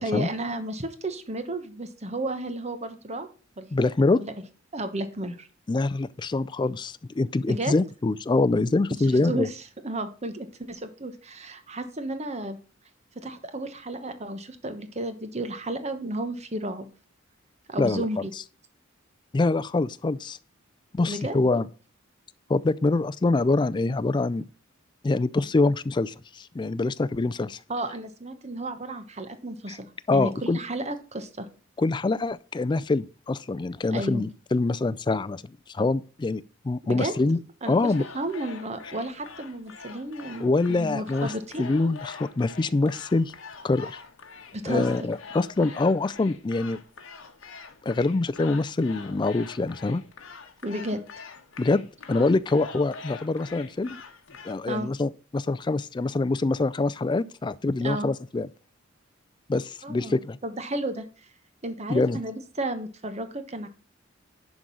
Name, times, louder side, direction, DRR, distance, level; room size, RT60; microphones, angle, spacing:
voice 1, 0.0-3.3 3.6-3.9 4.2-4.3 4.7-5.5 7.4-7.7 9.0-12.6 13.1-16.9 17.7-18.3 21.1-21.4 27.7-29.9 30.1-31.5 33.9-34.3 36.9-37.1 37.6-41.7 44.5-45.1 50.6-51.0 54.7-54.9 57.8-58.1 59.8-61.3 61.6-63.7, right 1 dB, 30° right, 1.1 m, -33 dB
voice 2, 3.7-4.2 5.7-9.5 17.8-18.0 19.3-20.4 20.9-21.7 22.5-24.5 25.0-27.6 29.7-29.8 30.1-30.6 31.8-35.4 35.7-37.4 37.7-38.0 40.4-41.3 41.6-43.3 43.6-44.0 44.7-46.8 47.8-50.0 51.6-54.0 54.4-58.5 59.5-60.4 61.9-62.2, left 3 dB, 20° left, 0.3 m, -25 dB
sound 1, 37.8-54.5, left 5 dB, 75° left, 1.3 m, -44 dB
11.0 x 3.8 x 6.1 m
head